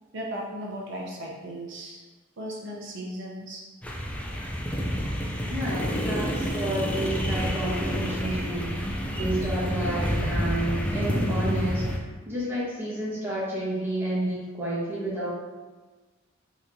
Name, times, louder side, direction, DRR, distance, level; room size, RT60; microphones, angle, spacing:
voice 1, 0.1-2.0 2.4-3.6, right 1 dB, 60° right, -2 dB, 0.8 m, -36 dB
sound 1, 3.8-12.0, equal, 5° left, 0.4 m, -28 dB
voice 2, 5.5-8.8 9.1-15.3, right 1 dB, 10° right, -8 dB, 1.3 m, -30 dB
5.3 x 3.1 x 2.7 m, 1.3 s
head